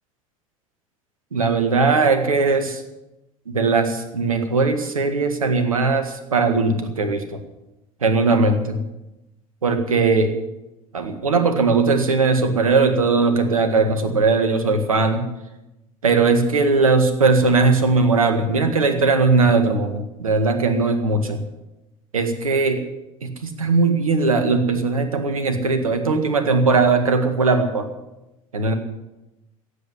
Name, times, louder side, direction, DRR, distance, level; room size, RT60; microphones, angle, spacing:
voice 1, 1.3-2.8 3.5-7.4 8.0-8.8 9.6-10.4 10.9-15.3 16.0-21.4 22.1-22.9 23.2-27.9 28.5-28.7, right 3 dB, 85° right, 8 dB, 1.8 m, -19 dB
16.0 x 8.3 x 9.7 m, 0.96 s
figure-of-eight pair, 70°, 17 cm